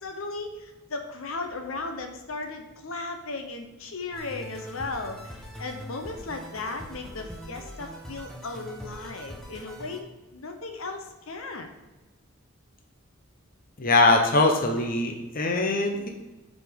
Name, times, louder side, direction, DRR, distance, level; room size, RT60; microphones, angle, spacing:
voice 1, 0.0-10.1 10.3-11.7, left 3 dB, 75° left, 5 dB, 0.9 m, -36 dB
sound 1, 4.1-10.0, equal, 5° left, 1.0 m, -42 dB
voice 2, 13.8-16.1, left 2 dB, 40° left, 3 dB, 0.8 m, -22 dB
7.5 x 4.3 x 5.1 m, 1.1 s
head